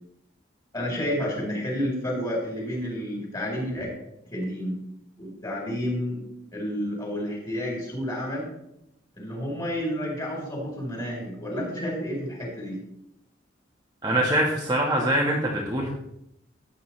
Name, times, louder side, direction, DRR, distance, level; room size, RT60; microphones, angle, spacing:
voice 1, 0.7-3.9 4.3-4.8 5.2-6.2 6.5-8.4 9.2-12.8, equal, 20° left, -2 dB, 4.5 m, -30 dB
voice 2, 14.0-15.9, right 1 dB, 20° right, -3 dB, 1.4 m, -24 dB
15.0 x 9.1 x 3.3 m, 0.80 s
head